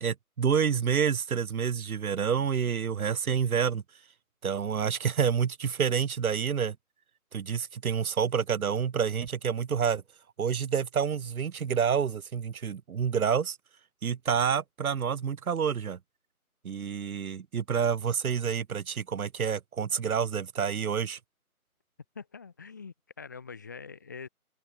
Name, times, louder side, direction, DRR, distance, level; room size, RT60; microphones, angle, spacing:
voice 1, 0.0-3.8 4.4-6.8 7.3-10.0 10.4-13.6 14.0-16.0 16.6-21.2, right 7 dB, 70° right, 0.6 m, -28 dB
voice 2, 22.2-24.3, left 5 dB, 10° left, 1.9 m, -44 dB
open air
figure-of-eight pair, 165°, 45 cm